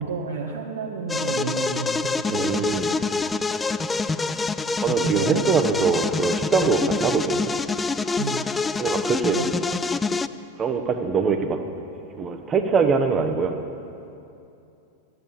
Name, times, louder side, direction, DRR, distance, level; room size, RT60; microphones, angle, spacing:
voice 1, 0.0-3.0 4.9-5.5 6.0-6.1 8.2-8.4 9.3-9.5, right 5 dB, 65° right, 0 dB, 1.1 m, -31 dB
sound 1, 1.1-10.3, left 4 dB, 15° left, 0.4 m, -26 dB
voice 2, 2.3-3.0 4.8-7.5 8.8-9.4 10.6-11.6 12.2-13.6, right 5 dB, 25° right, 7 dB, 1.0 m, -23 dB
13.5 x 9.9 x 7.1 m, 2.7 s
figure-of-eight pair, 90°, 0 cm